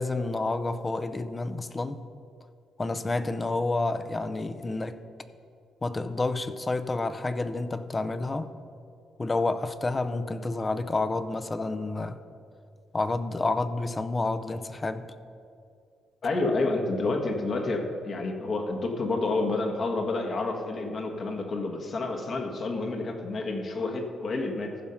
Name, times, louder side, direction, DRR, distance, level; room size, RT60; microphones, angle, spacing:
voice 1, 0.0-2.0 2.8-5.0 5.8-8.5 9.2-12.2 12.9-15.0, left 2 dB, 25° left, 11 dB, 0.6 m, -29 dB
voice 2, 16.2-24.7, left 2 dB, 50° left, 3 dB, 1.5 m, -29 dB
14.5 x 5.5 x 5.7 m, 2.4 s
cardioid pair, 90°, 0 cm